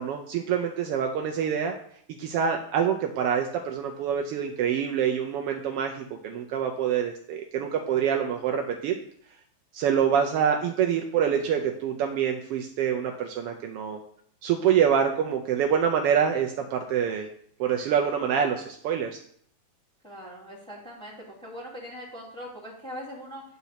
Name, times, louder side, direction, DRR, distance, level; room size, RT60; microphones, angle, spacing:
voice 1, 0.0-1.7 2.1-8.9 9.7-14.0 14.4-17.3 17.6-19.2, right 8 dB, 90° right, 3 dB, 1.3 m, -26 dB
voice 2, 20.0-21.1 21.4-23.4, equal, ahead, -5 dB, 1.9 m, -41 dB
9.4 x 4.1 x 5.7 m, 0.63 s
omnidirectional pair, 3.3 m